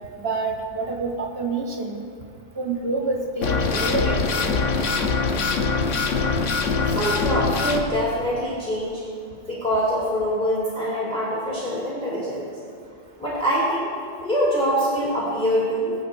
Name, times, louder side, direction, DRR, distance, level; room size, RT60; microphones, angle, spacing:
voice 1, 0.2-2.1 2.6-4.7, right 3 dB, 60° right, 1 dB, 1.4 m, -27 dB
sound 1, 3.4-7.8, left 4 dB, 90° left, 1.2 m, -23 dB
voice 2, 6.9-9.0 9.5-12.5 13.2-13.9 14.2-15.9, equal, 5° left, -8 dB, 2.8 m, -24 dB
21.0 x 8.5 x 2.7 m, 2.2 s
omnidirectional pair, 1.2 m